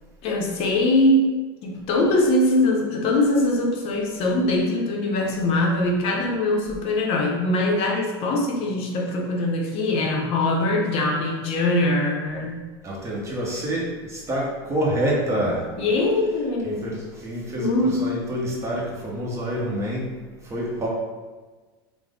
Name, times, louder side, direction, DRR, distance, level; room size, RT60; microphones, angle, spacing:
voice 1, 0.2-1.3 1.6-12.6 15.8-16.8 17.6-18.0, left 1 dB, 50° left, 0 dB, 0.6 m, -22 dB
voice 2, 12.8-15.9 16.6-20.1 20.4-20.9, right 1 dB, 20° right, -3 dB, 0.9 m, -27 dB
3.3 x 2.0 x 3.6 m, 1.3 s
supercardioid pair, 115°, 13 cm